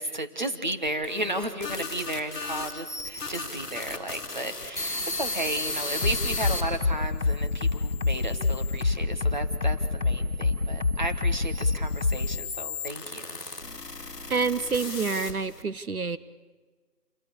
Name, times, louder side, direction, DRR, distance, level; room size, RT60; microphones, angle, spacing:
voice 1, 0.0-13.4, right 1 dB, 30° right, 7 dB, 1.2 m, -34 dB
sound 1, 0.9-6.6 7.3-8.8 9.6-15.6, left 3 dB, ahead, 2.0 m, -36 dB
sound 2, 6.0-12.4, left 3 dB, 50° left, 2.6 m, -26 dB
voice 2, 14.3-16.2, right 4 dB, 65° right, 14 dB, 0.9 m, -27 dB
28.5 x 23.0 x 7.0 m, 1.4 s
figure-of-eight pair, 175°, 47 cm